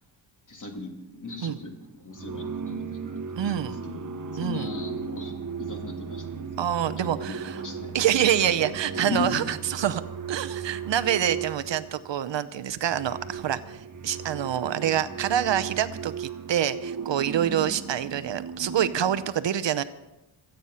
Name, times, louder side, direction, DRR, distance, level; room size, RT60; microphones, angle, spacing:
voice 1, 0.5-1.8 2.0-8.0 9.0-9.4, left 3 dB, 40° left, 3 dB, 2.8 m, -37 dB
sound 1, 1.4-1.7 2.1-12.2 12.7-19.3, right 6 dB, 40° right, 1.2 m, -36 dB
voice 2, 3.4-3.8 4.4-4.7 6.6-7.6 7.9-10.0 10.3-19.8, right 10 dB, 65° right, 13 dB, 0.8 m, -26 dB
26.0 x 9.1 x 5.7 m, 0.98 s
wide cardioid pair, 120°, 47 cm